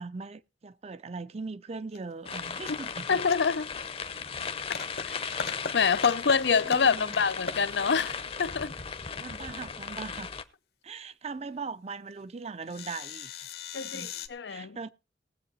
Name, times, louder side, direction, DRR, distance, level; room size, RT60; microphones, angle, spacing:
voice 1, 0.0-3.2 6.6-7.2 9.2-10.3 10.8-13.5 13.8-14.2 14.5-14.9, right 4 dB, 35° right, 0.5 m, -40 dB
sound 1, 1.9-2.0 2.3-3.6 3.9-4.0 4.4-5.0 5.3-6.4 6.6-7.2 7.4-8.1 9.9-10.2 11.4-11.5 11.7-11.8 12.2-12.3 12.6-14.3, left 5 dB, 60° left, 1.1 m, -38 dB
sound 2, 2.2-10.4, left 5 dB, 35° left, 0.8 m, -37 dB
voice 2, 3.1-3.7 5.1-5.2 5.7-8.7 13.7-14.8, left 6 dB, 85° left, 0.6 m, -26 dB
19.0 x 8.0 x 4.1 m
head